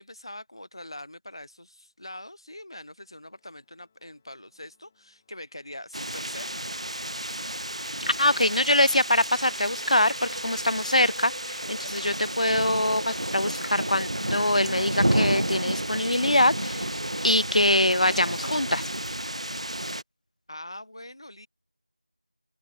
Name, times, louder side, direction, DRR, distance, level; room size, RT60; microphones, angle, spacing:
voice 1, 0.0-6.7 20.5-21.5, left 1 dB, 35° left, 7.2 m, -43 dB
Organ, 2.9-13.6, left 6 dB, 5° left, 6.2 m, -72 dB
sound 1, 5.9-20.0, right 1 dB, 45° right, 2.3 m, -31 dB
voice 2, 8.2-17.0 17.2-18.9, left 1 dB, 60° left, 0.4 m, -24 dB
figure-of-eight pair, 180°, 4 cm